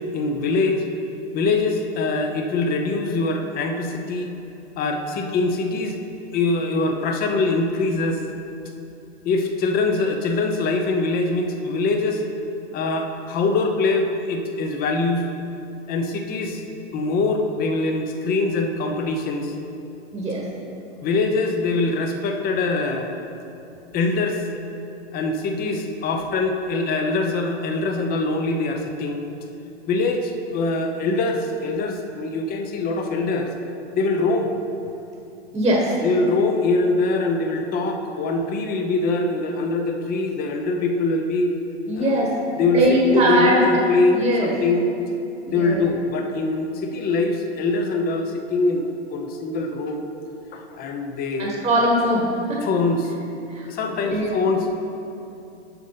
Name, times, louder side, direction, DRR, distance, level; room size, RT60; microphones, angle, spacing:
voice 1, 0.1-0.8 1.3-4.3 4.8-6.0 6.3-8.2 9.2-12.2 12.7-15.2 15.9-16.6 16.9-19.5 21.0-23.1 23.9-24.4 25.1-29.2 29.9-33.5 33.9-34.5 36.0-41.5 41.9-42.3 42.6-44.9 45.5-50.0 50.5-51.5 52.6-53.1 53.7-54.7, left 3 dB, 25° left, 4 dB, 0.9 m, -23 dB
voice 2, 20.1-20.4 35.5-35.9 41.9-42.3 42.7-43.6 44.1-44.5 45.4-45.8 51.4-52.6 53.5-53.7 54.0-54.4, right 1 dB, 10° right, -2 dB, 1.3 m, -21 dB
10.5 x 6.3 x 4.0 m, 2.8 s
hypercardioid pair, 110°, 33 cm